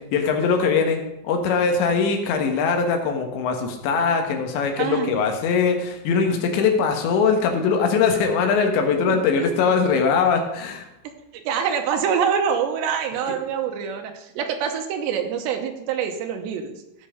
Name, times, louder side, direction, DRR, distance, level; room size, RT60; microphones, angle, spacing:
voice 1, 0.0-10.9, left 5 dB, 85° left, 4 dB, 3.6 m, -21 dB
voice 2, 4.8-5.2 9.1-9.2 11.3-16.8, right 7 dB, 85° right, 5 dB, 3.2 m, -25 dB
16.0 x 5.6 x 5.0 m, 0.89 s
omnidirectional pair, 5.0 m